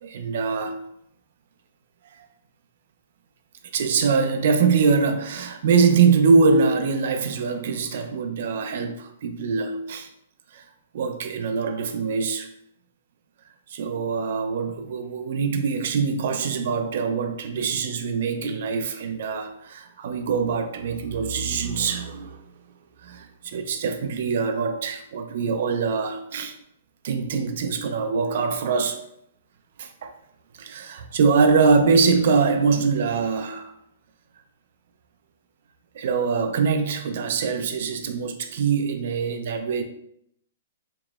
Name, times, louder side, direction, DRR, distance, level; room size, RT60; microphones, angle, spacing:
voice 1, 0.0-0.8 3.7-10.1 10.5-10.6 10.9-12.5 13.7-22.4 23.0-26.6 27.0-29.0 29.8-30.1 30.6-33.7 35.9-39.8, right 5 dB, 50° right, 0.4 m, -23 dB
4.7 x 2.9 x 2.4 m
hypercardioid pair, 170°, 0 cm